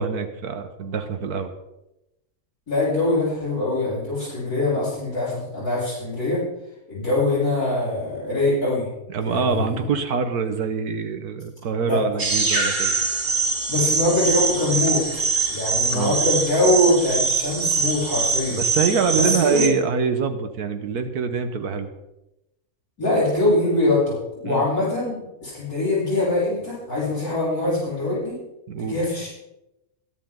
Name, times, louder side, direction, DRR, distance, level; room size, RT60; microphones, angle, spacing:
voice 1, 0.0-1.5 9.1-12.9 15.9-16.2 18.5-21.9 24.4-24.7 28.7-29.0, right 5 dB, 90° right, 7 dB, 1.7 m, -25 dB
voice 2, 2.7-6.4 6.9-8.9 9.2-9.9 11.8-12.0 13.7-15.0 15.5-18.6 19.1-19.7 23.0-28.4 28.8-29.3, left 2 dB, 90° left, -12 dB, 7.7 m, -23 dB
sound 1, 12.2-19.7, right 4 dB, 55° right, 2.8 m, -23 dB
22.5 x 10.0 x 3.9 m, 0.92 s
omnidirectional pair, 1.6 m